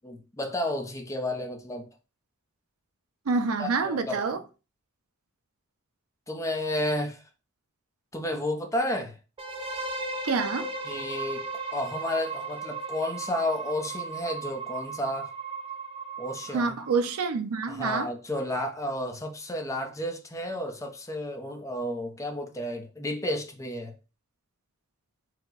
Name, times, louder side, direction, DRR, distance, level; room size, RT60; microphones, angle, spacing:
voice 1, 0.0-1.9 3.6-4.2 6.3-7.2 8.1-9.2 10.8-15.3 16.2-16.7 17.7-23.9, left 1 dB, 15° left, 0.7 m, -32 dB
voice 2, 3.3-4.4 10.2-10.7 16.5-18.1, right 4 dB, 70° right, 0.5 m, -27 dB
sound 1, 9.4-17.2, right 3 dB, 25° right, 0.6 m, -36 dB
4.7 x 2.2 x 3.9 m
head